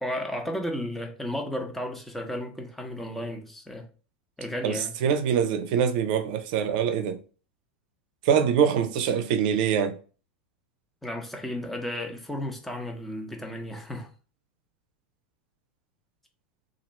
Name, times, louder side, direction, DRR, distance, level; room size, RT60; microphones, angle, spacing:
voice 1, 0.0-3.9 4.4-4.9 11.0-14.1, left 1 dB, 5° left, 0.9 m, -33 dB
voice 2, 4.6-7.2 8.2-10.0, right 8 dB, 65° right, 0.6 m, -24 dB
2.9 x 2.6 x 4.2 m
hypercardioid pair, 105°, 5 cm